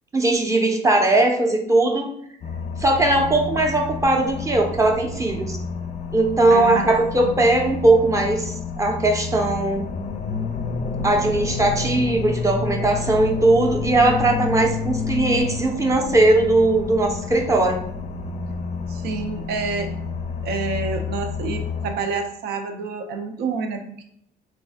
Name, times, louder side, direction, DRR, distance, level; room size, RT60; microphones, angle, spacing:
voice 1, 0.1-2.1 2.8-5.6 6.1-9.8 11.0-17.8, right 2 dB, 20° right, 2 dB, 0.6 m, -19 dB
sound 1, 2.4-21.9, left 4 dB, 40° left, 0.5 m, -29 dB
voice 2, 6.5-6.9 7.2-7.4 18.9-19.9 20.4-24.0, right 4 dB, 70° right, 5 dB, 0.6 m, -28 dB
3.2 x 2.5 x 3.5 m, 0.70 s
cardioid pair, 110°, 17 cm